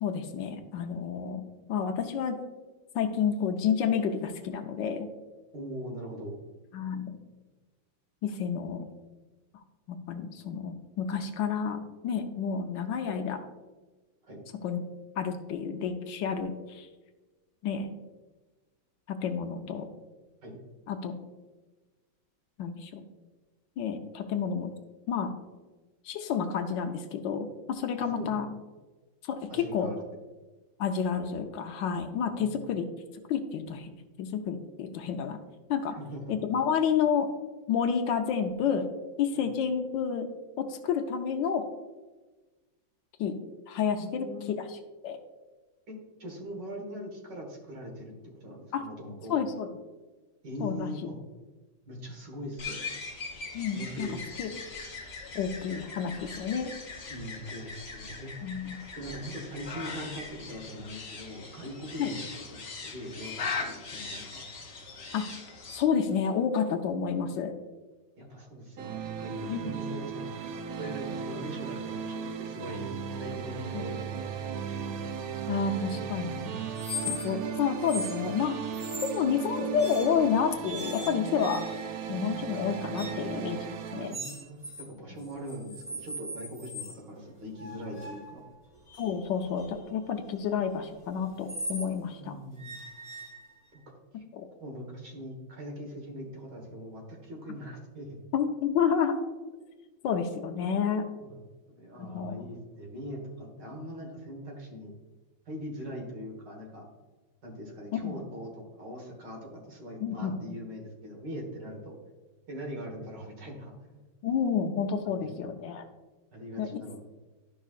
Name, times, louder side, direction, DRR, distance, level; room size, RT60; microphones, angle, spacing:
voice 1, 0.0-1.4 1.7-2.4 2.9-5.1 6.7-7.1 8.2-8.8 9.9-13.5 14.6-14.8 15.2-16.9 17.6-17.9 19.1-19.9 20.9-21.1 22.6-23.1 23.8-24.7 25.1-25.3 26.0-28.5 29.2-29.9 30.8-32.9 33.3-33.9 34.2-35.4 35.7-36.0 36.3-37.3 37.7-38.9 39.2-40.3 40.6-41.6 43.2-43.4 43.7-44.3 44.7-44.8 45.0-45.2 48.7-48.8 49.3-49.7 50.6-51.1 53.5-54.1 54.4-54.5 55.3-56.7 58.4-58.8 62.0-62.1 65.1-65.2 65.7-67.5 69.5-69.7 73.7-73.8 75.5-76.5 77.0-78.5 79.0-81.7 82.1-84.1 89.0-92.4 94.3-94.4 98.3-99.2 100.0-101.0 102.0-102.4 108.0-108.2 110.0-110.4 114.2-115.8 116.6-116.8, left 7 dB, 75° left, 6 dB, 1.3 m, -30 dB
voice 2, 5.5-6.4 14.2-14.4 20.4-20.6 28.1-28.3 29.5-30.0 32.3-32.7 35.9-36.2 39.3-39.4 44.0-44.6 45.9-49.3 50.4-51.2 51.9-52.8 53.7-54.2 57.1-58.3 59.0-62.2 62.8-64.5 68.2-70.5 70.8-74.9 84.0-88.4 92.2-92.7 93.7-93.8 94.1-94.2 94.6-98.2 101.2-101.4 101.8-104.9 105.5-106.8 107.4-111.9 112.5-114.1 115.0-115.4 116.3-117.0, equal, 65° right, 1 dB, 2.2 m, -41 dB
sound 1, 52.6-65.8, left 4 dB, 45° left, 1.0 m, -40 dB
sound 2, 68.8-84.1, right 6 dB, 80° right, 0.8 m, -36 dB
sound 3, 76.7-77.5 77.8-78.2 78.7-79.2 79.8-80.3 80.6-82.0 82.9-83.3 84.1-84.9 85.2-87.0 87.6-91.9 92.6-93.8, equal, 20° right, 1.9 m, -40 dB
12.0 x 5.5 x 2.4 m, 1.2 s
omnidirectional pair, 2.1 m